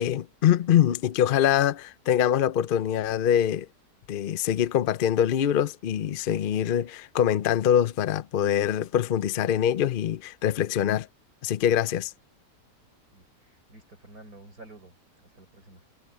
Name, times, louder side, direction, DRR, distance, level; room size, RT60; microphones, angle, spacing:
voice 1, 0.0-3.7 4.1-11.1 11.4-12.1, left 10 dB, 50° left, 0.6 m, -24 dB
voice 2, 13.1-15.0 15.2-15.8, right 2 dB, 80° right, 5.8 m, -50 dB
omnidirectional pair, 1.6 m